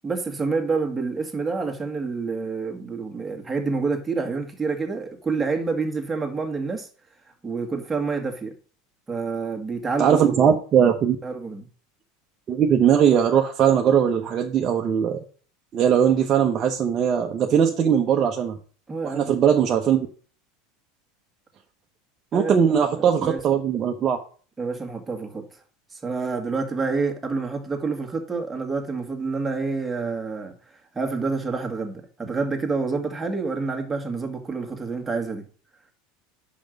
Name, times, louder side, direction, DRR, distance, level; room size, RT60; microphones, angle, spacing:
voice 1, 0.0-6.9 7.4-8.5 9.1-10.5 11.2-11.7 18.9-19.4 22.3-23.4 24.6-25.5 25.9-35.4, right 4 dB, 15° right, 1.9 m, -28 dB
voice 2, 10.0-11.2 12.5-15.2 15.7-18.6 19.0-20.1 22.3-24.2, right 8 dB, 40° right, 0.9 m, -20 dB
5.2 x 5.2 x 6.4 m
hypercardioid pair, 90°, 0 cm